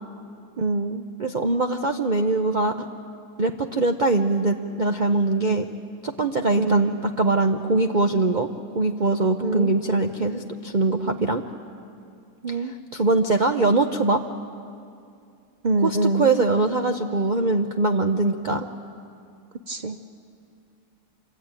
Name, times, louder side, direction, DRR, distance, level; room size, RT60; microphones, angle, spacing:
voice 1, 0.6-1.0 6.6-7.0 9.4-9.7 12.4-12.7 15.6-16.3 19.7-20.0, right 2 dB, 80° right, 9 dB, 0.4 m, -25 dB
voice 2, 1.2-2.9 3.4-5.7 6.0-8.5 8.7-11.4 12.9-14.2 15.8-18.7, right 3 dB, 40° right, 4 dB, 0.6 m, -22 dB
27.0 x 22.5 x 9.0 m, 2.4 s
omnidirectional pair, 1.9 m